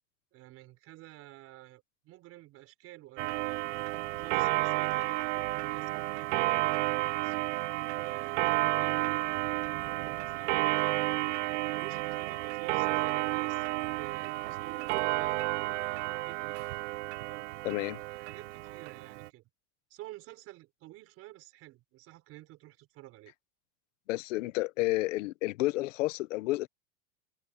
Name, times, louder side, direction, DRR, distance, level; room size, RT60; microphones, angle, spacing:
voice 1, 0.3-7.5 8.0-11.1 11.6-13.7 14.0-16.6 17.2-17.5 18.1-19.5 19.9-23.3, right 17 dB, 40° right, 5.9 m, -51 dB
Clock, 3.2-19.3, right 20 dB, 70° right, 0.9 m, -31 dB
sound 1, 4.6-15.5, left 22 dB, 55° left, 3.2 m, -64 dB
voice 2, 17.6-18.0 24.1-26.7, left 19 dB, 80° left, 1.1 m, -30 dB
supercardioid pair, 165°, 37 cm